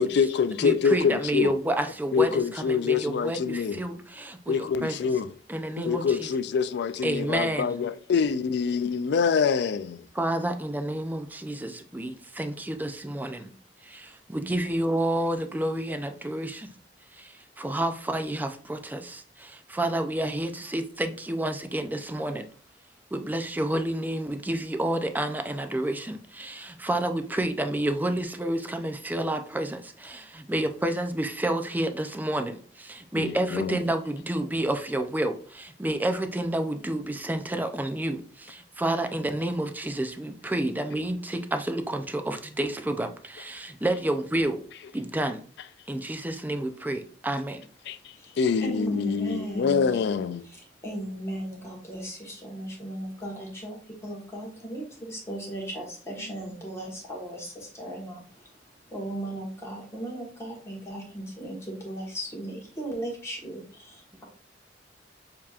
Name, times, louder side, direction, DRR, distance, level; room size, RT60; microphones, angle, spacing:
voice 1, 0.0-1.5 2.1-3.8 4.5-5.3 5.8-10.0 33.2-33.8 47.9-48.0 48.4-50.4, left 6 dB, 65° left, 0.3 m, -25 dB
voice 2, 0.6-5.1 5.5-6.3 7.0-7.8 10.1-13.5 13.8-16.7 17.1-22.5 23.1-44.6 44.9-45.4 45.9-47.6, right 1 dB, 10° right, 0.4 m, -30 dB
voice 3, 48.2-49.9 50.4-58.6 58.9-64.2, right 1 dB, 15° left, 1.3 m, -37 dB
6.7 x 2.9 x 2.4 m
head